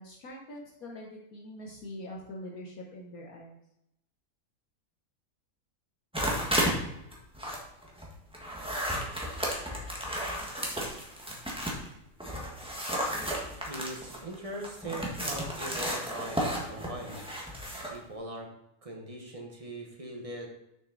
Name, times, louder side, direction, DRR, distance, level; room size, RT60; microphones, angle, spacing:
voice 1, 0.0-3.6, left 1 dB, 65° left, -2 dB, 1.5 m, -44 dB
sound 1, 6.1-6.8 7.1-11.9 12.2-18.0, equal, 5° right, 1.2 m, -33 dB
voice 2, 13.6-17.2 17.9-18.5 18.8-20.5, right 1 dB, 25° right, 0 dB, 1.1 m, -41 dB
6.7 x 6.2 x 3.9 m, 0.82 s
omnidirectional pair, 1.7 m